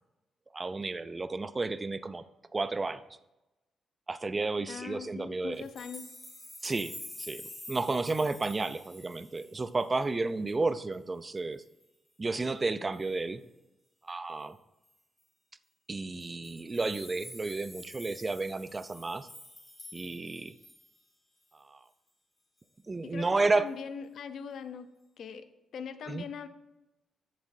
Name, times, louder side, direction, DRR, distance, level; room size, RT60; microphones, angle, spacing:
voice 1, 0.5-2.2 2.5-3.0 4.1-5.6 6.6-11.6 12.2-13.4 14.0-14.6 15.9-19.3 19.9-20.5 21.5-21.8 22.9-23.7 26.1-26.3, right 3 dB, 30° right, 13 dB, 0.5 m, -32 dB
voice 2, 4.7-6.1 23.0-24.9 25.2-25.4 25.7-26.5, left 6 dB, 70° left, 10 dB, 0.6 m, -41 dB
sound 1, 5.5-10.1 10.5-10.6 10.9-11.0 11.4-11.8 12.9-13.2 14.8-14.9 15.2-15.3 16.1-21.0 21.5-21.6, left 1 dB, 15° left, 2.3 m, -48 dB
13.0 x 7.5 x 2.7 m, 0.97 s
supercardioid pair, 55°, 0 cm